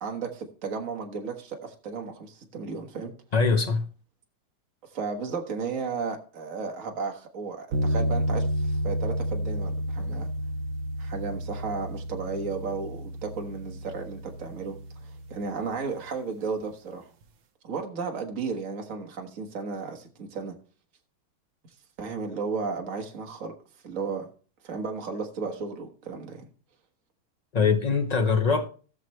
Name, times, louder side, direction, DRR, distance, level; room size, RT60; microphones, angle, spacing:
voice 1, 0.0-3.1 4.9-10.3 11.0-17.1 17.6-20.5 22.0-23.5 23.8-24.3 24.6-26.5, right 5 dB, 45° right, 1.8 m, -34 dB
voice 2, 3.3-3.9 27.5-28.7, left 5 dB, 60° left, 0.4 m, -23 dB
sound 1, 7.7-15.9, equal, 70° right, 1.6 m, -31 dB
19.0 x 6.3 x 3.1 m
omnidirectional pair, 2.2 m